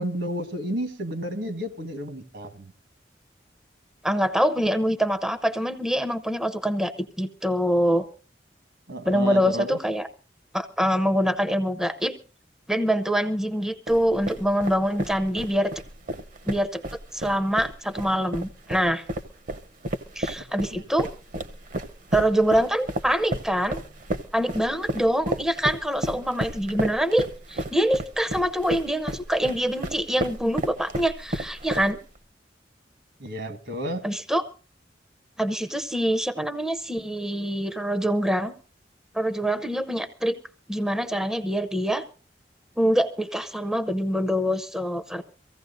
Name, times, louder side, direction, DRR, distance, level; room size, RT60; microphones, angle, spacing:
voice 1, 0.0-2.7 8.9-9.8 20.6-20.8 33.2-34.0, equal, 70° right, 1.5 m, -32 dB
voice 2, 4.0-8.1 9.1-10.1 10.5-12.1 12.7-15.7 16.5-16.8 17.1-19.0 20.2-21.1 22.1-23.8 24.3-32.0 34.0-34.4 35.4-38.5 39.1-40.4 40.7-42.0 42.8-45.2, equal, 5° right, 0.6 m, -25 dB
sound 1, 13.9-32.2, right 1 dB, 50° right, 0.8 m, -32 dB
23.5 x 15.5 x 2.6 m
head